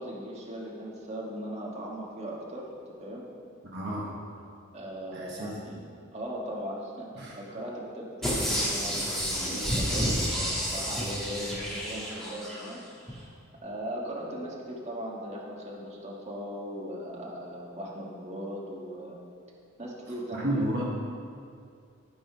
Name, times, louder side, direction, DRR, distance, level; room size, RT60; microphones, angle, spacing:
voice 1, 0.0-2.7 3.0-3.3 4.7-5.8 6.1-7.1 7.3-10.1 10.4-13.3 13.6-19.2 19.8-20.8, equal, 35° right, -3 dB, 1.4 m, -38 dB
voice 2, 3.6-4.1 5.1-5.8 7.2-7.3 9.3-9.6 20.3-20.9, right 1 dB, 50° right, -4 dB, 1.2 m, -32 dB
sound 1, 8.2-12.7 13.1-13.2, equal, ahead, 1.5 m, -30 dB
12.5 x 4.3 x 5.5 m, 2.3 s
head